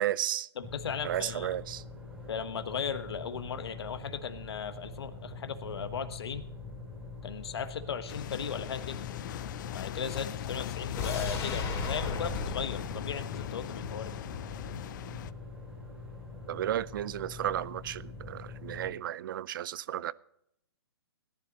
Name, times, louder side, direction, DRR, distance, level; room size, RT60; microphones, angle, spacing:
voice 1, 0.0-0.5 1.0-1.8 16.5-20.1, right 12 dB, 50° right, 0.5 m, -33 dB
voice 2, 0.6-1.5 2.3-6.4 7.2-9.0 9.7-14.1, left 7 dB, 70° left, 1.3 m, -37 dB
sound 1, 0.6-18.9, left 3 dB, 10° right, 5.4 m, -44 dB
sound 2, 8.1-15.3, left 12 dB, 45° left, 0.4 m, -39 dB
sound 3, 11.0-14.1 14.4-14.5, left 3 dB, 20° left, 3.1 m, -36 dB
18.0 x 11.0 x 4.0 m
hypercardioid pair, 140°, 14 cm